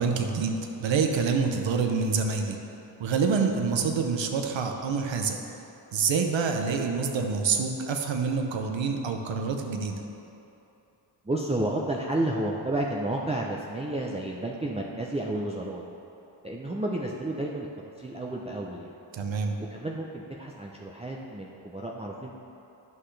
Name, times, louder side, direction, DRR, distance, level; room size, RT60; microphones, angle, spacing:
voice 1, 0.0-2.6 3.0-5.4 5.9-10.0 19.1-19.6, right 5 dB, 70° right, 4 dB, 0.9 m, -27 dB
voice 2, 11.2-15.8 16.4-17.7 18.0-19.0 19.7-22.3, right 1 dB, 15° right, -3 dB, 0.6 m, -31 dB
11.0 x 5.8 x 3.3 m, 2.9 s
cardioid pair, 55°, 47 cm